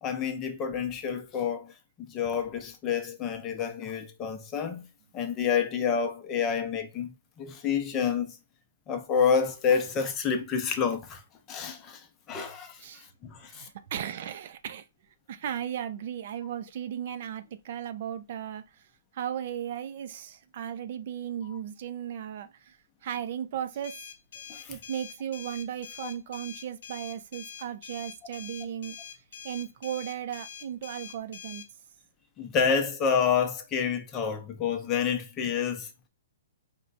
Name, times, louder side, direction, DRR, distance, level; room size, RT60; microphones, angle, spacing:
voice 1, 0.0-4.9 5.1-8.4 8.9-11.2 11.5-13.7 17.1-17.2 24.5-24.8 32.4-35.9, left 6 dB, 20° left, 0.6 m, -29 dB
voice 2, 13.5-14.8 15.3-18.6 19.1-22.8 23.0-24.0 24.7-29.0 29.4-31.6, right 9 dB, 45° right, 0.5 m, -36 dB
sound 1, 23.8-31.7, left 8 dB, 60° left, 0.8 m, -45 dB
4.3 x 2.2 x 3.9 m
hypercardioid pair, 160°, 0 cm